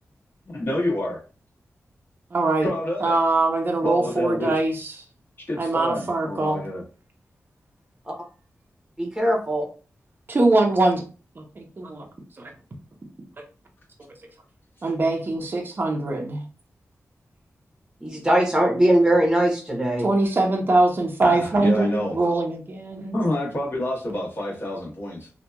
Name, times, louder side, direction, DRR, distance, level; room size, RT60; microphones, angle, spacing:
voice 1, 0.5-1.2 2.6-3.2 3.8-4.5 5.5-6.8 21.2-22.2 23.1-25.3, left 1 dB, 45° left, -3 dB, 1.2 m, -28 dB
voice 2, 2.3-2.7 3.0-4.9 5.6-6.6 10.3-11.0 11.4-12.1 12.4-12.5 14.8-16.4 20.0-23.2, right 2 dB, 40° right, 1 dB, 0.5 m, -22 dB
voice 3, 9.0-9.7 18.0-20.1, right 1 dB, 10° right, 0 dB, 0.9 m, -20 dB
2.8 x 2.2 x 2.2 m, 0.36 s
cardioid pair, 70°, 5 cm